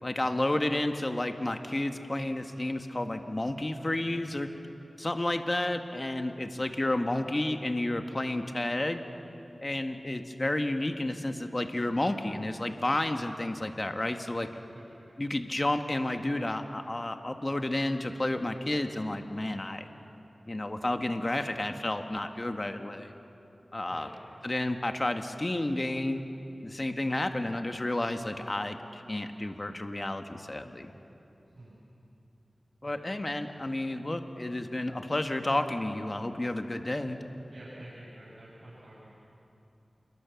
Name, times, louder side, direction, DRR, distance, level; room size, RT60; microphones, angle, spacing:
voice 1, 0.0-4.5 5.0-9.0 9.6-14.5 15.2-19.9 20.5-23.1 23.7-24.1 24.4-26.2 26.6-30.9 32.8-37.2, left 1 dB, 35° left, 6 dB, 1.7 m, -31 dB
voice 2, 37.5-39.1, right 1 dB, 60° right, -9 dB, 7.5 m, -49 dB
28.0 x 22.5 x 7.2 m, 2.8 s
cardioid pair, 45°, 0 cm